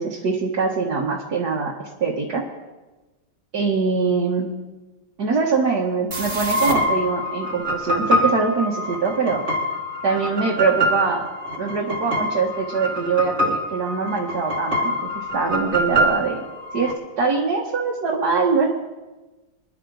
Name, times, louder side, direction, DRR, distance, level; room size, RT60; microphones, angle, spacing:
voice 1, 0.0-2.4 3.5-4.5 5.2-9.4 10.0-11.3 11.6-16.4 16.7-18.7, right 4 dB, 55° right, -2 dB, 1.9 m, -23 dB
sound 1, 6.1-16.9, equal, 35° right, 1.9 m, -25 dB
25.0 x 11.0 x 4.0 m, 1.2 s
omnidirectional pair, 2.2 m